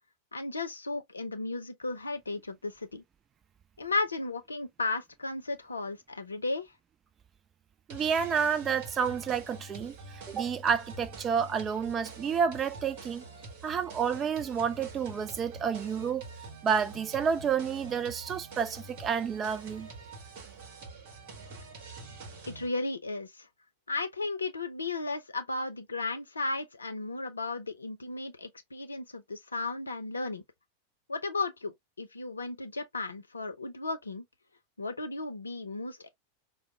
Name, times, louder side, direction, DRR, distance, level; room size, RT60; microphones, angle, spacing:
voice 1, 0.3-3.0 3.8-6.7 22.5-23.5 23.9-30.4 31.1-34.2 34.8-36.1, left 3 dB, 75° left, 0.6 m, -35 dB
voice 2, 7.9-9.9 10.3-13.2 13.6-16.3 16.6-19.9, right 7 dB, 25° right, 0.3 m, -30 dB
sound 1, 7.9-22.7, right 3 dB, 50° right, 1.1 m, -46 dB
4.7 x 2.0 x 2.3 m
figure-of-eight pair, 90°, 0 cm